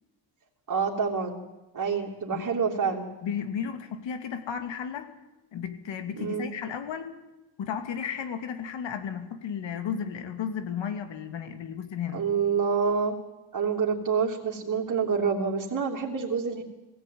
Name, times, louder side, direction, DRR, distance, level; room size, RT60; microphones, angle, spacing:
voice 1, 0.7-1.4 1.7-3.1 6.2-6.5 12.1-13.2 13.5-16.6, right 5 dB, 45° right, -3 dB, 3.1 m, -27 dB
voice 2, 3.2-5.1 5.5-7.1 7.6-12.2, left 7 dB, 75° left, 8 dB, 2.6 m, -34 dB
20.5 x 16.5 x 9.4 m, 1.0 s
cardioid pair, 95°, 45 cm